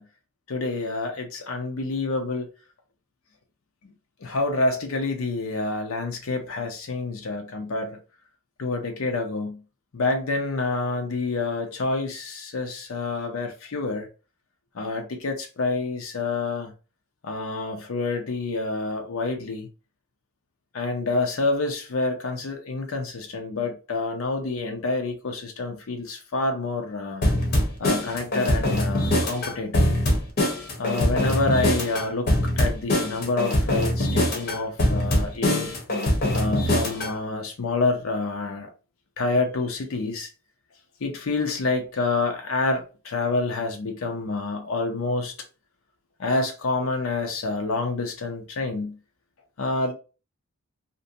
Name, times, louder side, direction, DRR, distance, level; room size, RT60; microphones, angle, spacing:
voice 1, 0.5-2.5 3.8-3.9 4.2-8.0 8.6-9.6 9.9-14.1 14.7-16.7 17.2-19.7 20.7-27.3 27.8-29.9 30.8-35.7 36.3-38.7 39.2-40.3 41.0-45.3 46.2-49.0 49.6-49.9, left 3 dB, 80° left, 0.6 m, -28 dB
sound 1, 27.2-37.2, left 1 dB, 50° left, 0.8 m, -23 dB
2.6 x 2.1 x 2.6 m
head